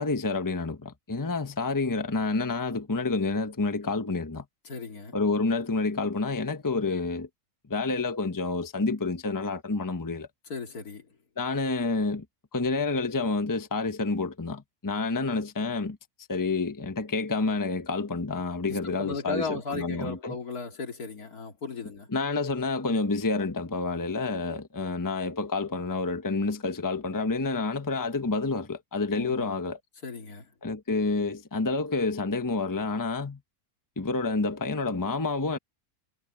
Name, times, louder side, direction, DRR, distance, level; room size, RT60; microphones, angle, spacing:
voice 1, 0.0-4.4 5.1-7.3 7.7-10.3 11.4-12.2 12.5-16.0 16.3-20.4 22.1-29.8 30.6-33.4 34.0-35.6, left 3 dB, 15° left, 1.0 m, -29 dB
voice 2, 4.6-5.2 10.5-11.1 18.7-22.1 29.1-29.5 30.0-30.5, left 4 dB, 70° left, 2.9 m, -36 dB
omnidirectional pair, 1.6 m